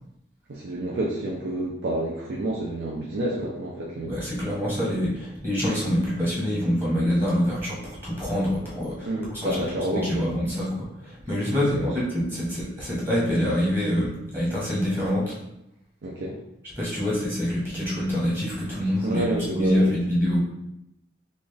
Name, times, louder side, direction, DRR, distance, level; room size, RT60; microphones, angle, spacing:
voice 1, 0.5-4.1 9.0-10.3 11.6-11.9 16.0-16.4 19.0-19.9, right 1 dB, 75° right, -4 dB, 0.6 m, -29 dB
voice 2, 4.0-9.6 9.9-15.4 16.8-20.4, equal, 10° right, -7 dB, 1.1 m, -26 dB
4.1 x 2.5 x 3.3 m, 0.84 s
head